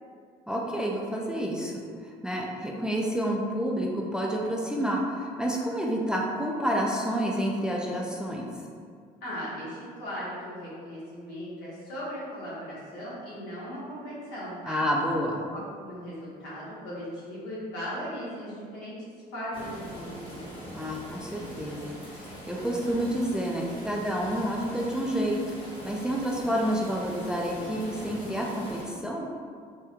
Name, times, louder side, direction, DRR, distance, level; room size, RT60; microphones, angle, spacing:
voice 1, 0.5-8.5 14.7-15.5 20.7-25.4 25.8-29.3, equal, 5° right, -2 dB, 0.3 m, -29 dB
voice 2, 9.2-14.9 15.5-20.6, equal, 90° left, -8 dB, 1.2 m, -38 dB
sound 1, 19.5-28.8, equal, 30° left, 1.1 m, -42 dB
3.5 x 2.2 x 2.8 m, 2.1 s
cardioid pair, 110°, 17 cm